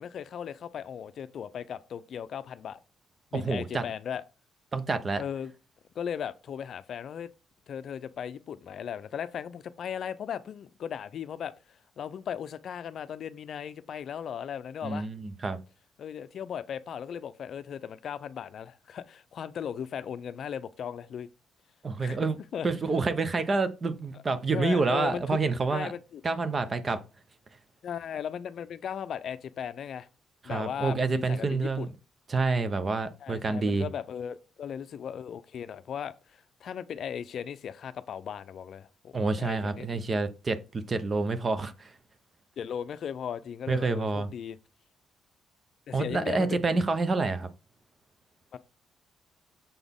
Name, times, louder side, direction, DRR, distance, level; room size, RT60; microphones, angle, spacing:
voice 1, 0.0-2.8 3.3-4.2 5.2-5.5 6.0-7.3 7.7-11.5 12.0-15.1 16.0-21.3 22.0-22.2 22.5-22.7 24.5-25.2 25.7-26.2 27.8-30.1 30.4-31.9 33.2-40.0 42.6-44.6 45.9-46.6 48.5-48.6, left 8 dB, 60° left, 0.5 m, -37 dB
voice 2, 3.3-3.8 4.7-5.2 14.8-15.6 21.8-22.4 22.6-25.9 26.2-27.0 30.4-31.9 32.3-33.9 39.1-41.9 43.7-44.3 45.9-47.5, right 3 dB, 35° right, 0.8 m, -28 dB
6.9 x 4.0 x 3.6 m
cardioid pair, 90°, 0 cm